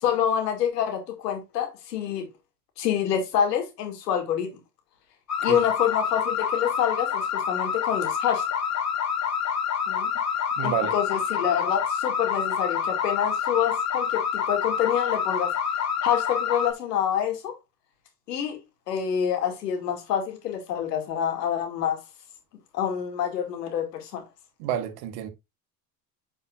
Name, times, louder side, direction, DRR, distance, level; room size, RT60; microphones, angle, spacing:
voice 1, 0.0-2.3 2.8-4.5 5.4-8.4 9.9-10.1 10.6-15.5 16.0-17.5 18.3-18.6 18.9-22.0 22.7-24.2, left 9 dB, 80° left, 2.4 m, -27 dB
sound 1, 5.3-16.7, left 7 dB, 35° left, 1.9 m, -27 dB
voice 2, 10.6-10.9 24.6-25.3, right 10 dB, 65° right, 1.5 m, -29 dB
9.5 x 5.3 x 2.4 m
hypercardioid pair, 75°, 47 cm